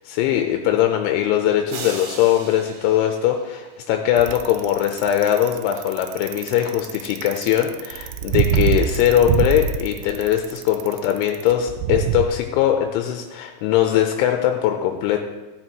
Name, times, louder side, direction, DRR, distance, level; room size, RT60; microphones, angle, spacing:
voice 1, 0.1-15.2, left 11 dB, 85° left, 4 dB, 3.1 m, -21 dB
sound 1, 1.7-4.0, right 4 dB, 60° right, 2.3 m, -37 dB
Bicycle, 4.2-12.3, right 9 dB, 90° right, 2.4 m, -24 dB
14.0 x 9.7 x 3.0 m, 1.2 s
omnidirectional pair, 5.5 m